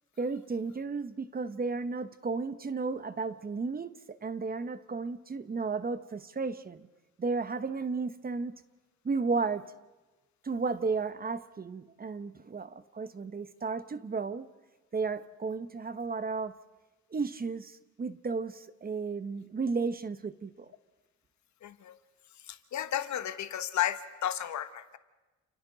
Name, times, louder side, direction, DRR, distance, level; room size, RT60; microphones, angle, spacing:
voice 1, 0.2-6.9 7.2-8.6 9.0-9.7 10.4-14.5 14.9-16.5 17.1-20.7, right 4 dB, 30° right, 1.0 m, -33 dB
voice 2, 21.6-22.0 22.4-25.0, left 11 dB, 70° left, 1.3 m, -33 dB
29.0 x 28.5 x 4.0 m
cardioid pair, 90°, 30 cm